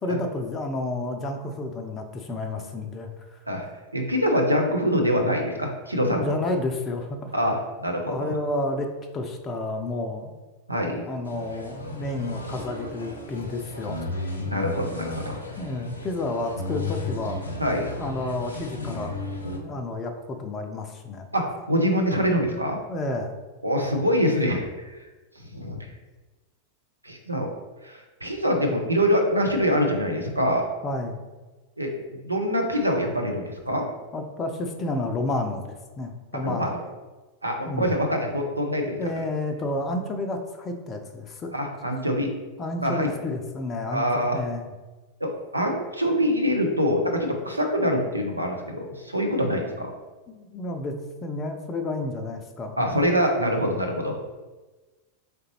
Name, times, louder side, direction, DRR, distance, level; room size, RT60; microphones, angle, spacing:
voice 1, 0.0-3.4 6.1-7.3 8.1-10.3 11.1-14.0 15.6-17.4 18.0-19.2 19.5-21.3 22.9-23.3 30.8-31.2 34.1-36.7 37.7-37.9 39.0-41.5 42.6-44.1 44.3-44.7 50.3-52.8, left 2 dB, 25° left, 4 dB, 0.4 m, -30 dB
voice 2, 3.9-6.3 7.3-8.3 10.7-11.0 14.4-15.4 17.6-17.9 21.3-22.8 23.6-25.0 25.4-25.8 27.0-27.5 27.8-30.7 31.8-31.9 32.2-33.8 36.4-36.8 37.4-39.2 41.5-42.3 42.8-43.1 43.9-44.4 45.2-49.9 52.8-54.2, equal, 85° right, 2 dB, 0.6 m, -25 dB
sound 1, 11.2-19.6, left 2 dB, 80° left, 0.6 m, -34 dB
3.8 x 3.3 x 2.9 m, 1.2 s
figure-of-eight pair, 90°, 0 cm